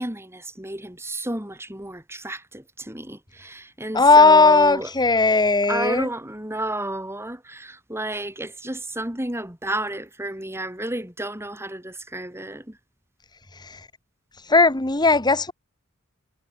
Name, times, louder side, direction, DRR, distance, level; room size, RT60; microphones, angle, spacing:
voice 1, 0.0-5.0 5.7-12.8, right 1 dB, 10° right, 6.4 m, -32 dB
voice 2, 3.9-6.1 13.7-13.8 14.5-15.5, left 3 dB, 20° left, 1.8 m, -16 dB
head